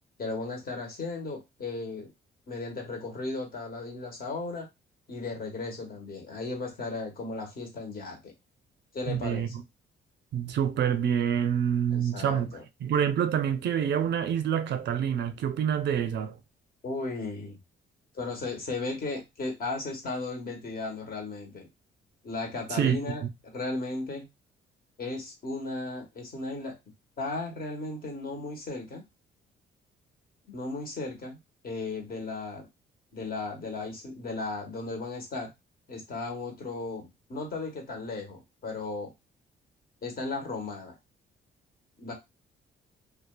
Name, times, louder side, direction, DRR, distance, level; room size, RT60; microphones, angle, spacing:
voice 1, 0.2-2.1 2.5-4.7 5.1-8.3 8.9-9.5 11.9-12.6 16.8-17.6 18.1-21.7 22.2-24.3 25.0-26.8 27.2-29.0 30.5-31.4 31.6-32.7 33.1-35.5 35.9-39.1 40.0-40.9 42.0-42.1, left 3 dB, 50° left, 1.1 m, -35 dB
voice 2, 9.1-9.6 10.3-16.4 22.7-23.3, right 8 dB, 60° right, 0.4 m, -27 dB
2.4 x 2.3 x 2.2 m
cardioid pair, 90°, 20 cm